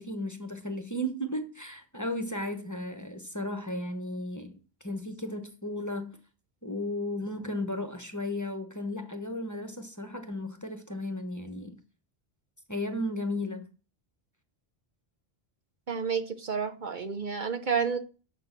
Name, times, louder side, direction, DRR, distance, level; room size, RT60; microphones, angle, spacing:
voice 1, 0.0-6.2 6.6-11.7 12.7-13.7, left 1 dB, 20° left, 1.1 m, -35 dB
voice 2, 15.9-18.0, right 6 dB, 50° right, 0.9 m, -30 dB
7.3 x 6.2 x 6.0 m
omnidirectional pair, 1.0 m